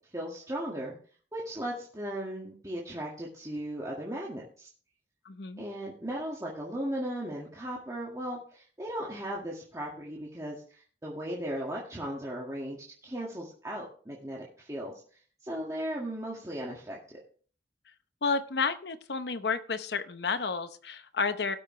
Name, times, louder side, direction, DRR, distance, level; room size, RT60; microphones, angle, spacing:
voice 1, 0.1-1.0 1.3-4.7 5.6-14.9 15.4-17.2, right 1 dB, 20° right, -4 dB, 1.9 m, -37 dB
voice 2, 5.2-5.6 18.2-21.6, left 4 dB, 70° left, 10 dB, 0.8 m, -31 dB
17.5 x 6.8 x 3.2 m, 0.43 s
head